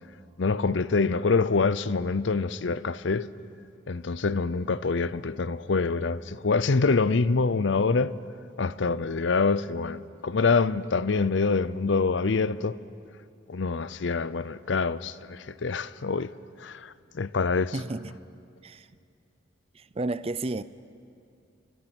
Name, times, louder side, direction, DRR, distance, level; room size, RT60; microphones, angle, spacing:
voice 1, 0.4-3.3 3.9-8.2 8.6-12.8 13.5-16.3 16.6-17.8, left 4 dB, 75° left, 0.6 m, -25 dB
voice 2, 17.7-18.1 18.6-18.8 20.0-20.6, right 2 dB, 30° right, 0.5 m, -31 dB
30.0 x 24.0 x 6.1 m
head